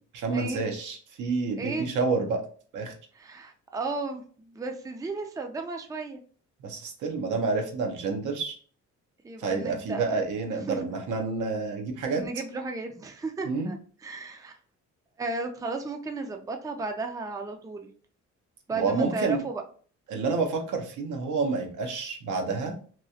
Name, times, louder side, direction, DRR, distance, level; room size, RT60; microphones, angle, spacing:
voice 1, 0.1-2.4 2.7-2.9 6.6-8.6 9.4-12.2 13.4-13.7 18.7-19.4 20.1-22.7, right 4 dB, 80° right, 3 dB, 0.8 m, -29 dB
voice 2, 1.6-1.9 3.1-6.2 9.2-10.2 10.7-10.8 12.2-13.8 14.0-14.6 15.2-17.9 18.7-19.6, right 3 dB, 10° right, 5 dB, 0.4 m, -34 dB
2.9 x 2.3 x 2.7 m, 0.43 s
cardioid pair, 90°, 30 cm